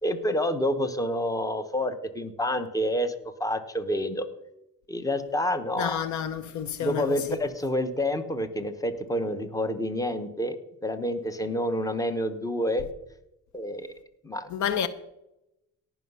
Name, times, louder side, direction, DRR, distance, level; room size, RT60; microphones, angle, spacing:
voice 1, 0.0-3.1 3.4-4.3 4.9-5.9 6.8-10.6 10.8-12.9 13.5-13.9 14.2-14.5, left 1 dB, 10° left, 1.1 m, -28 dB
voice 2, 5.8-7.4 14.5-14.9, left 8 dB, 70° left, 0.8 m, -30 dB
17.5 x 5.9 x 5.5 m
cardioid pair, 90°, 30 cm